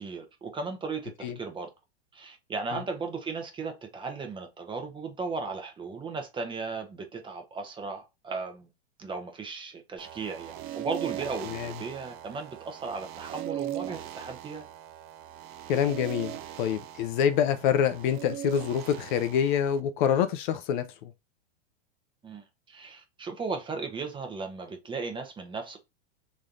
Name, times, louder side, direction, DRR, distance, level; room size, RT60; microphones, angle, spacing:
voice 1, 0.0-1.7 2.1-8.7 9.0-14.6 22.2-25.8, right 4 dB, 15° right, 0.8 m, -36 dB
sound 1, 10.0-19.8, right 12 dB, 30° right, 0.4 m, -40 dB
voice 2, 15.7-20.9, left 8 dB, 50° left, 0.5 m, -26 dB
3.2 x 2.7 x 3.7 m
hypercardioid pair, 115°, 32 cm